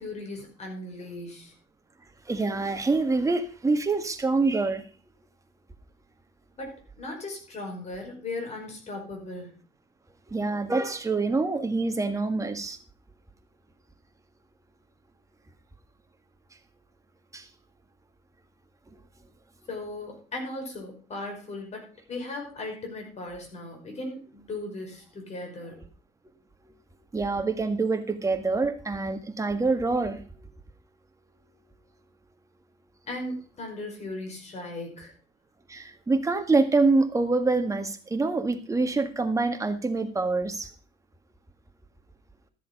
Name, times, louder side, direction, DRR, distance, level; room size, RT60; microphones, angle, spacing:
voice 1, 0.0-1.5 6.6-9.5 19.7-21.8 22.1-25.8 33.1-35.1, left 2 dB, 40° left, 2 dB, 5.2 m, -37 dB
voice 2, 2.3-4.8 10.3-12.8 17.3-17.5 27.1-30.5 35.7-40.7, right 3 dB, 20° right, 6 dB, 1.8 m, -26 dB
13.5 x 7.6 x 5.3 m, 0.37 s
cardioid pair, 110°, 17 cm